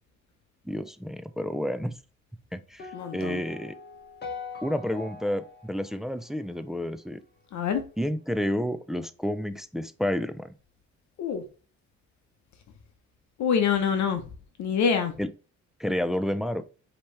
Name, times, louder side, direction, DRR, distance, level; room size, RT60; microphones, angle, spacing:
voice 1, 0.7-1.9 2.5-3.7 4.6-7.2 8.0-10.5 15.2-15.3 15.8-16.6, equal, ahead, 0.3 m, -30 dB
sound 1, 2.8-7.1, left 4 dB, 35° left, 1.0 m, -42 dB
voice 2, 2.9-3.4 7.5-7.8 11.2-11.4 13.4-14.2 14.6-15.1, left 7 dB, 70° left, 0.8 m, -25 dB
5.1 x 2.9 x 3.2 m
cardioid pair, 90°, 30 cm